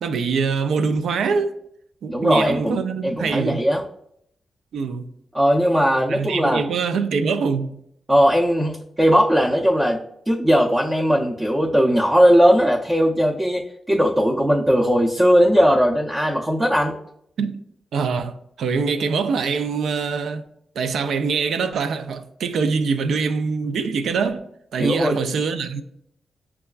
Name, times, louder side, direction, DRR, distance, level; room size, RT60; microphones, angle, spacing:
voice 1, 0.0-1.6 2.0-3.6 4.7-5.0 6.1-7.8 17.4-17.6 17.9-20.4 20.8-24.4 24.7-25.8, right 5 dB, 85° right, 0.3 m, -24 dB
voice 2, 2.1-2.8 3.0-3.8 5.3-6.6 8.1-10.0 10.3-13.6 13.9-16.9 24.8-25.2, equal, 15° right, 0.5 m, -18 dB
6.5 x 2.3 x 2.3 m
wide cardioid pair, 115°, 0 cm